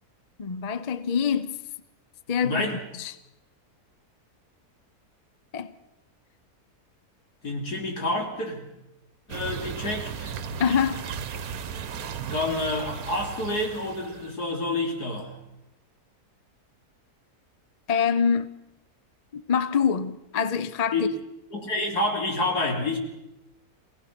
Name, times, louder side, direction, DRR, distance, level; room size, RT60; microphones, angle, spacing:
voice 1, 0.4-1.6 2.3-2.7 2.9-3.1 5.5-5.7 10.6-11.1 17.9-18.5 19.3-21.1, left 7 dB, 40° left, 0.5 m, -25 dB
voice 2, 2.4-2.7 7.4-8.7 9.3-10.4 12.3-15.4 20.9-21.1 21.5-23.0, left 2 dB, 80° left, 3.7 m, -28 dB
sound 1, 9.3-14.4, right 7 dB, 70° right, 1.4 m, -36 dB
24.0 x 17.5 x 6.1 m
omnidirectional pair, 1.7 m